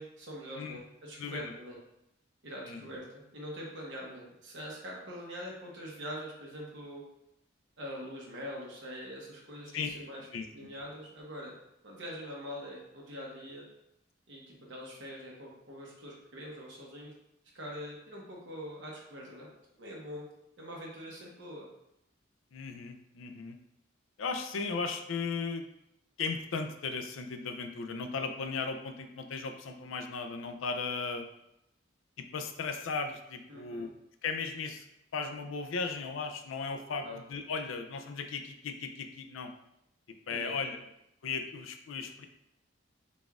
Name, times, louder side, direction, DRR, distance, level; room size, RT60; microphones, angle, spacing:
voice 1, 0.0-1.8 2.4-7.0 7.8-11.5 11.8-13.6 14.3-17.1 17.5-19.5 19.8-20.3 20.6-21.7 33.5-33.9 37.0-37.2 40.3-40.8, equal, 65° right, -3 dB, 1.1 m, -44 dB
voice 2, 1.2-1.5 2.7-2.8 9.7-9.9 10.3-10.7 22.5-23.6 24.2-25.7 26.2-31.2 32.2-33.9 34.2-34.8 35.1-39.5 40.3-40.8 41.2-42.3, left 4 dB, 80° left, 6 dB, 0.4 m, -36 dB
4.0 x 3.4 x 2.4 m, 0.82 s
head